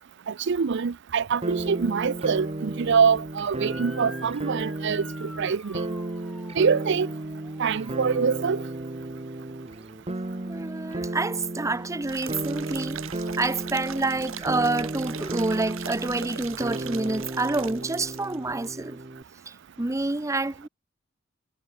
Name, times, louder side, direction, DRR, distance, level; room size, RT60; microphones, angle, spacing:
voice 1, 0.3-5.9 6.6-7.1 7.6-8.6, right 6 dB, 60° right, 0.5 m, -24 dB
sound 1, 1.4-19.2, right 2 dB, 30° right, 1.0 m, -34 dB
Motor vehicle (road) / Siren, 3.6-8.9, equal, ahead, 2.8 m, -48 dB
voice 2, 10.5-13.0 13.4-19.0 19.5-20.7, right 2 dB, 15° right, 0.6 m, -28 dB
sound 2, 12.1-18.4 18.6-18.7, right 8 dB, 80° right, 1.7 m, -40 dB
head